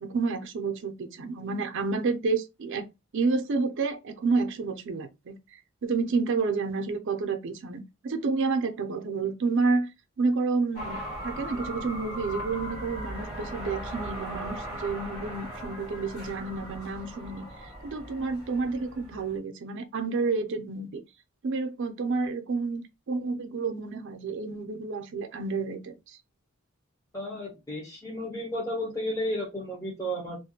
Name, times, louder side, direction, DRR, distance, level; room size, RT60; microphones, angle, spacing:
voice 1, 0.0-2.9 3.1-5.4 5.8-9.9 10.2-17.5 17.8-21.0 21.4-25.9, right 4 dB, 60° right, 0.5 m, -29 dB
sound 1, 10.7-19.4, right 1 dB, 85° left, 1.0 m, -38 dB
voice 2, 27.1-30.4, equal, 15° left, 0.6 m, -33 dB
2.4 x 2.1 x 2.7 m
head